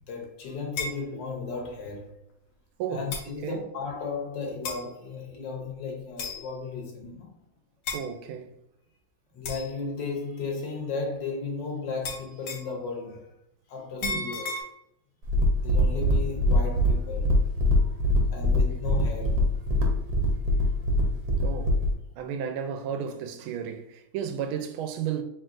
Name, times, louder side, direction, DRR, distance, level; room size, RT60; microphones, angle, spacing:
voice 1, 0.0-2.2 2.9-7.4 9.3-13.3 13.7-14.6 15.6-17.4 18.3-19.5, left 4 dB, 65° left, 1.5 m, -35 dB
sound 1, 0.8-1.0 2.1-2.2 3.1-3.3 4.6-4.9 6.2-6.5 7.8-8.1 9.4-9.7 12.0-12.8 14.0-14.6, left 3 dB, 80° left, 1.6 m, -33 dB
voice 2, 2.8-3.1 3.4-3.6 7.9-8.6 14.0-14.3 18.5-18.6 18.9-19.0 21.4-21.8 22.2-25.2, right 8 dB, 80° right, 1.4 m, -33 dB
sound 2, 15.2-21.9, left 1 dB, 55° right, 1.2 m, -23 dB
4.5 x 3.7 x 2.5 m
omnidirectional pair, 2.3 m